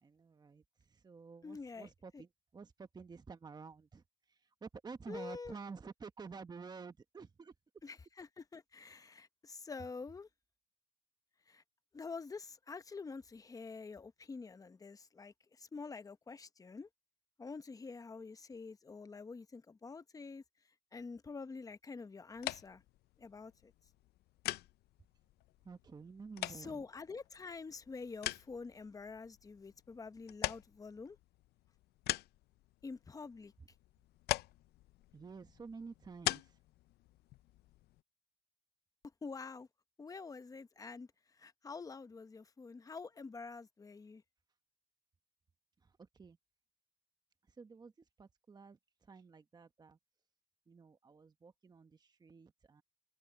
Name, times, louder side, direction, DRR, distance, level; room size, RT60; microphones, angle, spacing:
voice 1, 0.0-0.6 0.9-4.0 4.6-7.5 25.6-26.8 35.1-36.5 46.1-46.4 47.6-47.9 48.2-48.8 49.1-50.0 50.7-52.8, right 5 dB, 25° right, 1.3 m, -51 dB
voice 2, 1.4-2.2 5.1-5.5 7.8-10.3 11.5-11.6 11.9-16.9 17.4-20.4 20.9-22.8 23.2-23.7 26.5-31.2 32.8-33.5 39.2-39.7 40.0-41.1 41.4-44.2, left 4 dB, 20° left, 0.9 m, -47 dB
sound 1, 22.3-38.0, left 17 dB, 70° left, 0.5 m, -44 dB
cardioid pair, 110°, 17 cm